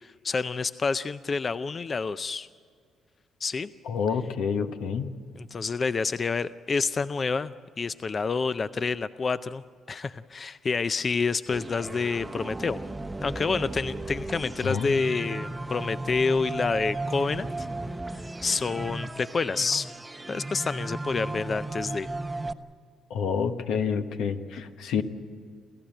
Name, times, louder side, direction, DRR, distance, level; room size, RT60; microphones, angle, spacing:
voice 1, 0.0-2.5 3.4-3.7 5.4-9.6 9.9-12.8 13.2-17.7 18.1-19.9 20.3-22.1, left 4 dB, 35° left, 13 dB, 0.5 m, -28 dB
voice 2, 3.8-5.1 14.6-14.9 23.1-25.0, left 6 dB, 85° left, 7 dB, 1.2 m, -28 dB
sound 1, 11.5-22.5, right 2 dB, 15° right, 0.8 m, -35 dB
28.5 x 14.5 x 9.0 m, 2.1 s
cardioid pair, 90°, 0 cm